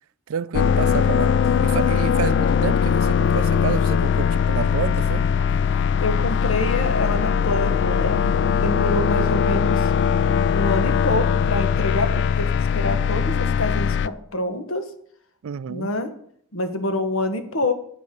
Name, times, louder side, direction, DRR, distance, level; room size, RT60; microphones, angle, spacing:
voice 1, 0.3-1.4 1.6-5.3 15.4-16.0, right 7 dB, 75° right, 0.4 m, -29 dB
sound 1, 0.5-14.1, left 7 dB, 55° left, 0.3 m, -20 dB
voice 2, 6.0-9.9 10.5-14.8 15.7-16.1 16.5-17.7, left 2 dB, 70° left, 1.3 m, -26 dB
8.7 x 8.3 x 5.3 m
head